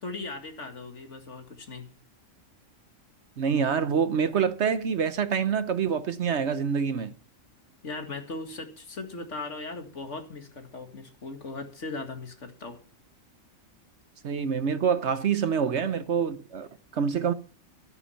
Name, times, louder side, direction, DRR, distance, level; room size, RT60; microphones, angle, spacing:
voice 1, 0.0-1.9 7.8-12.8, left 3 dB, 60° left, 2.3 m, -38 dB
voice 2, 3.4-7.1 14.2-16.7 16.9-17.3, right 7 dB, 60° right, 1.1 m, -26 dB
13.5 x 9.6 x 5.6 m
omnidirectional pair, 1.4 m